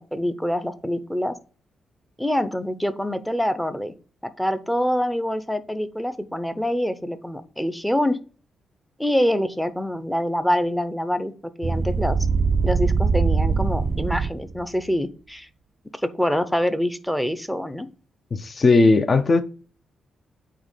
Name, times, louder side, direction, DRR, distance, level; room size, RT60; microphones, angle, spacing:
voice 1, 0.0-1.3 2.2-3.9 4.2-8.2 9.0-11.3 11.6-12.2 12.6-15.5 16.0-17.9, equal, 5° left, 0.8 m, -25 dB
sound 1, 11.6-14.6, right 4 dB, 35° right, 0.4 m, -22 dB
voice 2, 18.3-19.4, left 3 dB, 35° left, 0.8 m, -17 dB
8.7 x 3.0 x 5.7 m
cardioid pair, 130°, 0 cm